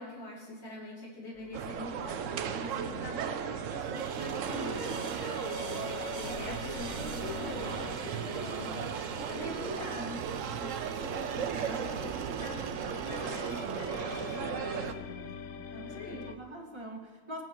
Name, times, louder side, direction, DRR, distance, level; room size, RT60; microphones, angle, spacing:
voice 1, 0.0-4.9 5.2-15.4 15.7-16.2, left 2 dB, 60° left, -7 dB, 3.4 m, -44 dB
sound 1, 1.4-2.6 4.5-11.0 13.1-16.4, left 7 dB, 85° left, 1.0 m, -45 dB
sound 2, 1.5-14.9, right 7 dB, 80° right, 1.1 m, -36 dB
sound 3, 3.9-14.3, right 6 dB, 50° right, 0.6 m, -44 dB
voice 2, 5.2-5.8 8.1-8.6 14.4-14.8 15.7-17.4, right 1 dB, 20° right, -1 dB, 1.7 m, -46 dB
23.5 x 9.1 x 3.1 m, 1.3 s
omnidirectional pair, 1.3 m